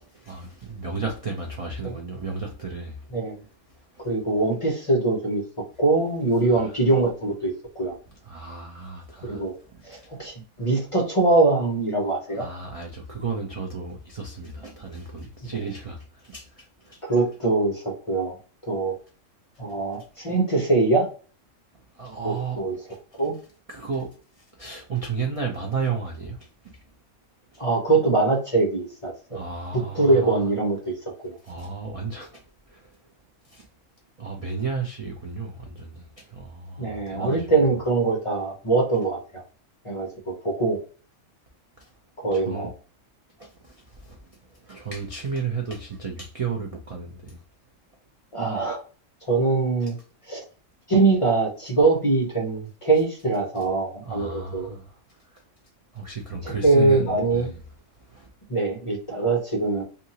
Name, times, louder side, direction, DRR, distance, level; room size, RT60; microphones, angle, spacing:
voice 1, 0.2-3.1 3.7-4.1 6.5-6.7 8.1-9.5 9.9-10.1 10.6-10.7 12.3-17.0 21.9-23.0 23.7-26.8 27.5-27.6 29.3-30.4 31.4-33.0 33.4-33.7 34.2-37.5 41.8-41.9 42.3-42.7 43.4-47.4 49.8-49.9 54.0-55.4 55.9-57.6 58.0-58.3, right 5 dB, 55° right, 0.3 m, -34 dB
voice 2, 4.0-5.4 5.8-7.9 9.2-9.5 9.8-12.4 15.5-15.6 17.0-18.3 18.6-18.9 19.6-21.1 22.2-22.7 23.2-23.4 27.6-29.4 29.7-30.9 31.2-31.4 36.8-39.4 39.8-40.8 42.2-42.7 48.3-48.8 49.3-50.0 50.3-50.4 50.9-54.8 56.4-57.5 58.5-59.8, right 3 dB, 35° left, 0.5 m, -23 dB
2.8 x 2.5 x 2.7 m
omnidirectional pair, 1.3 m